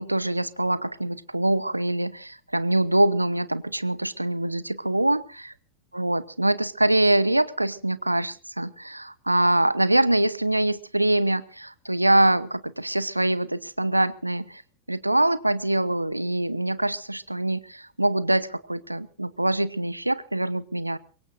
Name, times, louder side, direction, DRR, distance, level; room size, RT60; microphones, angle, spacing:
voice 1, 0.0-5.5 5.9-14.6 14.9-21.0, right 1 dB, 85° right, 18 dB, 0.8 m, -24 dB
24.0 x 22.0 x 2.6 m, 0.38 s
figure-of-eight pair, 90°, 0 cm